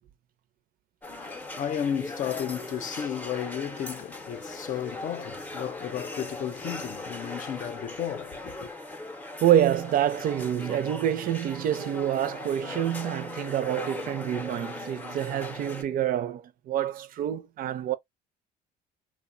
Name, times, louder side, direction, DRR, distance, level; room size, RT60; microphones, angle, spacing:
voice 1, 1.0-8.7, left 9 dB, 50° left, 0.6 m, -33 dB
sound 1, 1.0-15.8, left 2 dB, 10° left, 0.6 m, -39 dB
voice 2, 9.4-18.0, right 11 dB, 55° right, 0.5 m, -27 dB
3.0 x 2.1 x 2.4 m
cardioid pair, 110°, 17 cm